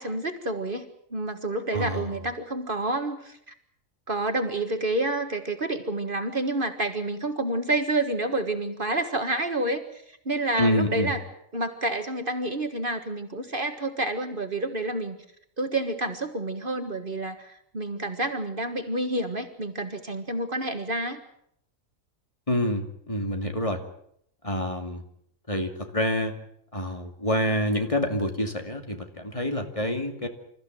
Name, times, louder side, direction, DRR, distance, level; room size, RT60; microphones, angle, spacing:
voice 1, 0.0-3.5 4.1-11.2 11.5-15.2 15.6-21.2, right 2 dB, 40° right, 7 dB, 1.8 m, -29 dB
voice 2, 1.7-2.1 10.6-11.1 22.5-23.8 24.4-25.0 25.5-26.4 26.7-30.3, equal, 25° left, 5 dB, 2.5 m, -27 dB
27.5 x 14.5 x 9.0 m, 0.71 s
omnidirectional pair, 1.4 m